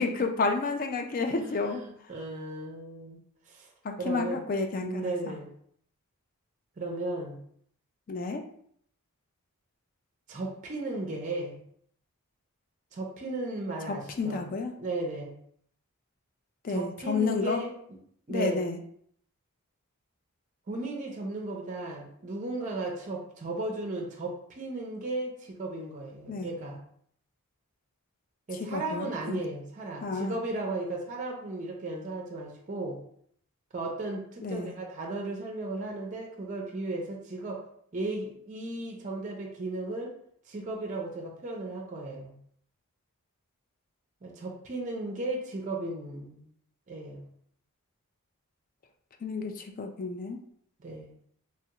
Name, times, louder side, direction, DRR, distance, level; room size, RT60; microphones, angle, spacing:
voice 1, 0.0-1.8 3.8-5.4 8.1-8.4 14.2-14.7 16.6-17.6 18.3-18.8 26.3-26.5 28.7-29.4 30.0-30.4 34.4-34.7 49.2-50.4, left 4 dB, 40° left, 5 dB, 0.3 m, -30 dB
voice 2, 1.4-3.7 4.0-4.4 4.8-5.5 6.8-7.4 10.3-11.6 12.9-14.5 14.8-15.4 16.7-17.7 18.3-18.6 20.7-26.8 28.5-33.0 33.7-37.6 37.9-40.1 40.5-42.3 44.2-46.5 46.9-47.3 50.8-51.1, right 2 dB, 35° right, 1 dB, 0.5 m, -35 dB
3.2 x 2.3 x 2.8 m, 0.65 s
head